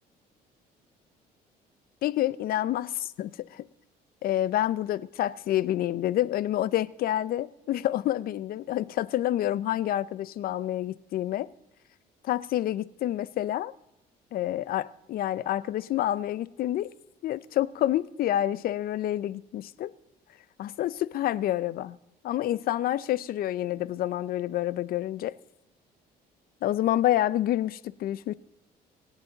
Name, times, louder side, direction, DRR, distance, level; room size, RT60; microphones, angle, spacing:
voice 1, 2.0-3.6 4.2-11.5 12.2-13.7 14.3-16.9 17.2-19.9 20.6-22.0 22.2-25.3 26.6-28.3, left 13 dB, 60° left, 0.5 m, -28 dB
25.0 x 8.3 x 3.9 m
cardioid pair, 110°, 17 cm